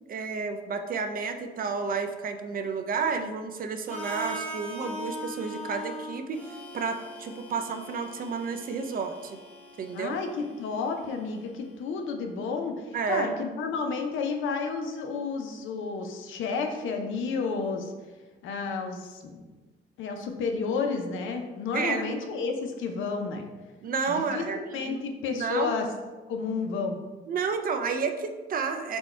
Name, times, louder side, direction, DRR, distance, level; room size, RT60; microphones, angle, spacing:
voice 1, 0.1-9.4 9.8-10.2 12.9-13.3 21.7-22.3 23.8-25.0 25.3-25.7 27.3-29.0, right 5 dB, 45° right, 7 dB, 0.5 m, -31 dB
Harmonica, 3.9-11.8, equal, 5° left, 0.9 m, -41 dB
voice 2, 9.9-12.8 13.1-17.9 18.4-19.4 20.0-23.4 24.1-25.8 26.3-27.0, left 5 dB, 80° left, 4 dB, 0.6 m, -31 dB
4.3 x 2.3 x 4.3 m, 1.3 s
cardioid pair, 90°, 20 cm